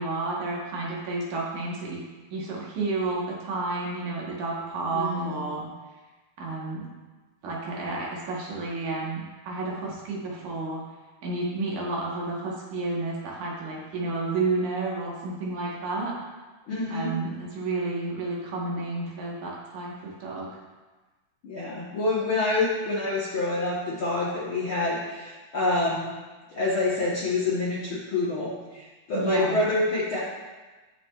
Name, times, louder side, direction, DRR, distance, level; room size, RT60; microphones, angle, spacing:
voice 1, 0.0-2.0 2.3-5.6 6.4-6.9 7.4-10.8 11.2-16.1 16.9-20.5 29.1-29.6, right 3 dB, 65° right, -3 dB, 2.5 m, -31 dB
voice 2, 4.9-5.4 16.7-17.2 21.4-26.1 26.5-30.2, left 2 dB, 60° left, -7 dB, 1.3 m, -27 dB
16.5 x 5.9 x 2.4 m, 1.3 s
omnidirectional pair, 4.1 m